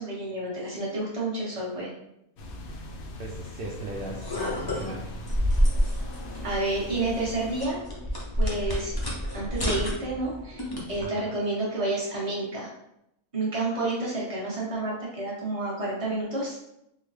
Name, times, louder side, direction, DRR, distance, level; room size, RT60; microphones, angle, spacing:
voice 1, 0.0-1.9 6.4-7.8 8.4-12.7 13.3-16.6, right 2 dB, 25° right, -6 dB, 1.0 m, -30 dB
sound 1, 2.4-7.6, left 1 dB, 85° left, 1.0 m, -42 dB
voice 2, 3.2-5.1 11.0-11.4, right 1 dB, 70° right, -3 dB, 0.5 m, -38 dB
sound 2, 3.9-11.0, equal, 35° left, 0.4 m, -29 dB
3.7 x 2.1 x 3.2 m, 0.81 s
omnidirectional pair, 1.4 m